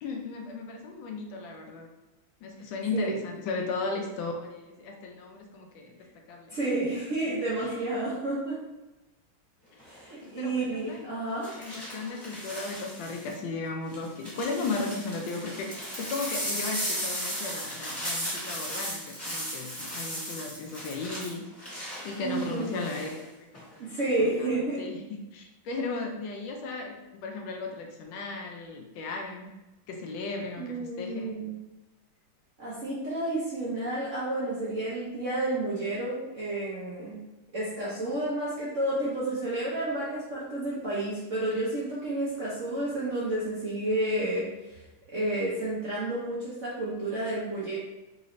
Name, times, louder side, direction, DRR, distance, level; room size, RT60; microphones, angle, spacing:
voice 1, 0.0-1.9 2.4-6.0 6.3-6.6 7.6-7.8 10.2-11.1 11.6-21.4 22.0-23.9 24.2-29.5 29.9-31.3, left 3 dB, 75° left, 2 dB, 1.2 m, -36 dB
voice 2, 6.5-8.6 9.9-11.5 22.2-22.7 23.8-24.8 30.6-31.6 32.6-37.2 37.5-44.8 45.1-47.8, right 1 dB, 60° right, -8 dB, 0.7 m, -30 dB
sound 1, 9.8-10.1 11.4-13.3 13.9-23.2 23.5-24.0, equal, 10° left, 0.9 m, -36 dB
3.8 x 3.1 x 2.5 m, 1.0 s
omnidirectional pair, 2.2 m